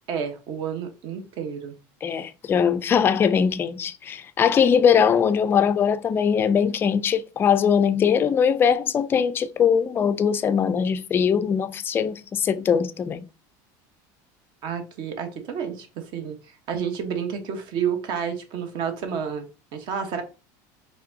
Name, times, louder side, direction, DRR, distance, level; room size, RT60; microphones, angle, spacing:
voice 1, 0.1-1.7 14.6-16.4 16.7-19.4 19.7-20.2, right 7 dB, 50° right, 1.1 m, -30 dB
voice 2, 2.0-13.2, left 7 dB, 20° left, 0.4 m, -21 dB
5.1 x 3.5 x 2.7 m
supercardioid pair, 140°, 10 cm